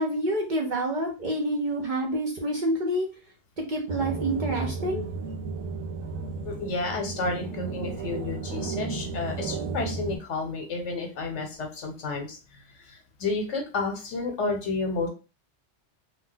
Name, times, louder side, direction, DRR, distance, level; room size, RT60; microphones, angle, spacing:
voice 1, 0.0-3.1 3.7-5.0, right 1 dB, 50° right, 0 dB, 0.6 m, -27 dB
sound 1, 3.9-10.2, right 4 dB, 85° right, 1.0 m, -33 dB
voice 2, 6.4-12.4 12.9-15.1, left 3 dB, 70° left, 2 dB, 1.0 m, -31 dB
2.7 x 2.0 x 3.6 m, 0.32 s
omnidirectional pair, 1.3 m